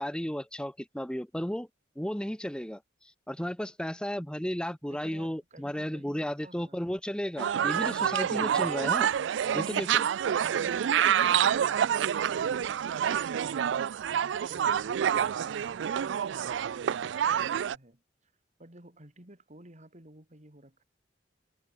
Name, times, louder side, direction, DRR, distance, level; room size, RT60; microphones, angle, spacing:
voice 1, 0.0-1.7 2.0-2.8 3.3-9.1 9.5-10.0, equal, 5° left, 1.0 m, -34 dB
voice 2, 4.9-6.8 10.4-13.7 14.1-18.3 18.6-20.8, right 1 dB, 40° right, 4.1 m, -53 dB
sound 1, 7.4-17.7, right 9 dB, 75° right, 0.4 m, -27 dB
head